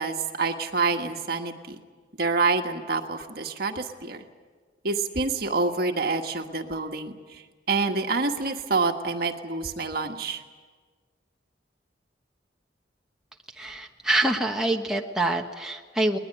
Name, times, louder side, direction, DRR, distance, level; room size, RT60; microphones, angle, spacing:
voice 1, 0.0-1.8 2.2-4.2 4.8-7.4 7.7-10.4, right 3 dB, 55° right, 5 dB, 1.6 m, -27 dB
voice 2, 13.5-16.2, right 2 dB, 5° right, 1 dB, 1.2 m, -26 dB
21.0 x 20.5 x 9.8 m, 1.5 s
head